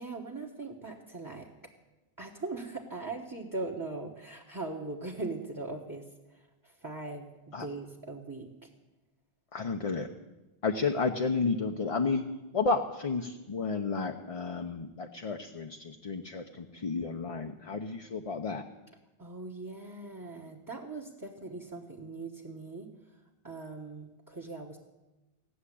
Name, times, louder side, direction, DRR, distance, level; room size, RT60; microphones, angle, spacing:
voice 1, 0.0-1.5 2.2-8.7 19.2-23.2 23.4-24.8, right 3 dB, 20° right, 3 dB, 1.2 m, -40 dB
voice 2, 9.5-10.1 10.6-12.2 12.5-18.6, left 4 dB, 40° left, 4 dB, 0.7 m, -32 dB
16.5 x 7.2 x 9.9 m, 1.1 s
omnidirectional pair, 1.0 m